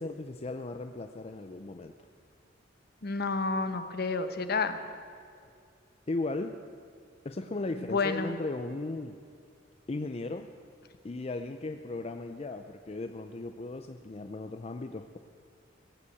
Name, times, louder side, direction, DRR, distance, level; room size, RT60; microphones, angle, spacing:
voice 1, 0.0-1.9 6.1-6.6 7.2-9.1 9.9-10.5 11.0-15.2, left 2 dB, 35° left, 7 dB, 0.5 m, -36 dB
voice 2, 3.0-4.8 7.9-8.3, left 4 dB, 55° left, 9 dB, 1.0 m, -30 dB
17.5 x 8.5 x 8.4 m, 2.3 s
head